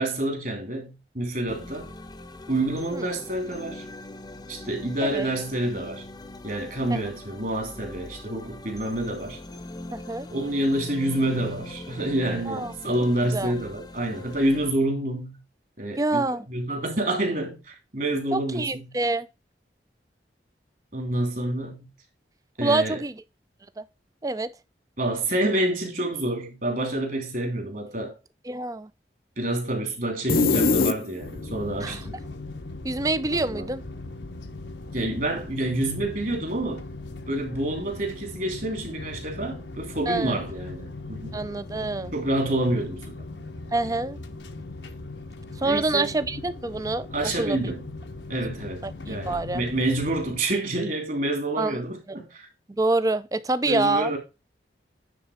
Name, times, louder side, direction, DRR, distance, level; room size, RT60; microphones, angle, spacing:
voice 1, 0.0-1.9 2.5-3.8 4.5-6.0 6.4-9.4 10.3-15.4 15.8-18.9 20.9-21.9 22.6-23.0 25.0-28.1 29.4-32.2 33.3-33.7 34.9-36.9 37.3-41.4 42.1-43.2 45.6-46.1 47.1-47.8 48.3-52.5 53.7-54.2, right 1 dB, 50° right, 2.8 m, -28 dB
sound 1, 1.5-14.7, left 1 dB, 25° left, 0.8 m, -41 dB
voice 2, 9.9-10.3 12.5-12.7 13.3-13.5 16.0-16.5 18.3-19.3 22.6-23.1 23.8-23.9 24.2-24.5 28.5-28.9 31.8-32.0 32.8-33.8 40.1-40.4 41.3-42.1 43.7-44.2 45.6-47.7 48.8-49.6 51.6-51.8 52.7-54.1, right 2 dB, 20° right, 0.5 m, -26 dB
sound 2, 30.3-31.5, left 3 dB, 55° left, 0.6 m, -21 dB
sound 3, 31.2-50.4, left 2 dB, 85° left, 1.1 m, -39 dB
9.9 x 3.9 x 5.0 m
head